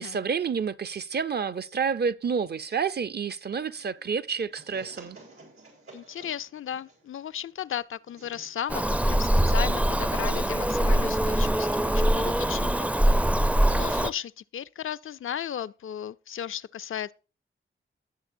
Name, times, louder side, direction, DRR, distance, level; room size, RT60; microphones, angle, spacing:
voice 1, 0.0-5.2, right 6 dB, 50° right, 0.6 m, -29 dB
sound 1, 3.5-10.2, right 2 dB, 90° right, 4.0 m, -54 dB
voice 2, 5.9-12.9 13.7-17.1, left 9 dB, 75° left, 0.4 m, -35 dB
Bird vocalization bird call bird song, 8.7-14.1, right 1 dB, 5° right, 0.4 m, -23 dB
18.5 x 6.7 x 2.6 m
wide cardioid pair, 80°, 21 cm